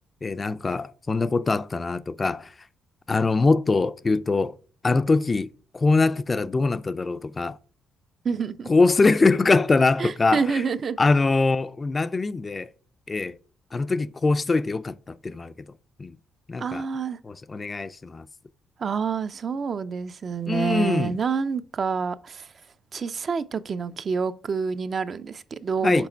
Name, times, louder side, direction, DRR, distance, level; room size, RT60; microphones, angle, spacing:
voice 1, 0.2-2.5 3.1-4.6 4.8-5.5 5.7-7.6 8.7-10.6 11.0-12.7 13.1-13.4 13.7-15.5 16.0-16.2 16.5-16.9 17.2-18.3 20.5-21.2 25.8-26.1, left 3 dB, 30° left, 0.3 m, -23 dB
voice 2, 8.2-8.7 10.0-11.0 16.6-17.2 18.8-22.5 22.9-26.1, right 5 dB, 45° right, 0.4 m, -28 dB
6.0 x 4.3 x 4.4 m
cardioid pair, 90°, 0 cm